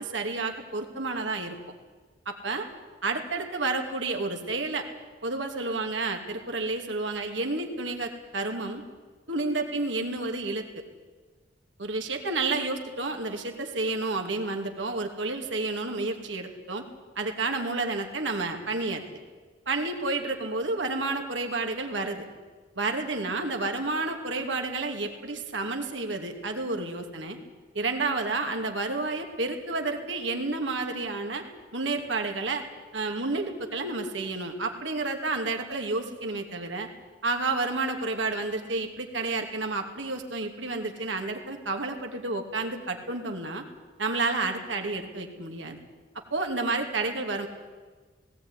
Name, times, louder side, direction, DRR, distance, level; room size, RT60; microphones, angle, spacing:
voice 1, 0.0-1.6 2.3-2.7 3.0-4.8 5.2-8.8 9.3-10.8 11.8-16.8 17.2-19.0 19.7-22.2 22.8-27.4 27.7-31.4 31.7-32.6 32.9-36.9 37.2-43.6 44.0-45.8 46.3-47.5, right 3 dB, 85° right, 3 dB, 2.7 m, -30 dB
19.0 x 17.0 x 9.9 m, 1.4 s
head